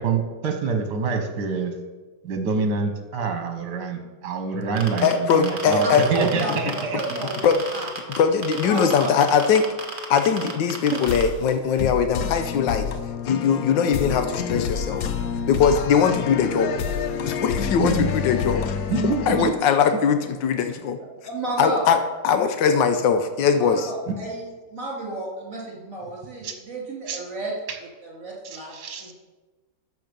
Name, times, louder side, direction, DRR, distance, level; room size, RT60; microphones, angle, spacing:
voice 1, 0.0-1.7 2.2-7.2 10.9-11.0 11.7-11.9 17.8-18.1 18.9-19.5 26.4-26.6 27.1-27.2 27.7-27.8 28.4-29.1, right 5 dB, 70° right, 6 dB, 1.8 m, -26 dB
sound 1, 4.8-8.2 8.4-11.2, right 3 dB, 30° right, 1.5 m, -32 dB
voice 2, 5.0-6.1 7.4-7.6 8.2-9.7 10.1-12.9 13.3-15.1 15.5-16.7 17.2-18.6 19.3-21.0 21.6-22.0 22.2-23.9, left 6 dB, 80° left, 7 dB, 1.5 m, -21 dB
voice 3, 5.8-7.9 8.6-9.4 17.2-17.9 18.4-18.5 21.2-21.9 23.5-27.5 28.0-29.1, right 2 dB, 45° right, -3 dB, 3.5 m, -32 dB
sound 2, 11.1-19.5, left 7 dB, 65° left, 1.0 m, -28 dB
13.0 x 6.7 x 5.3 m, 1.3 s
omnidirectional pair, 1.9 m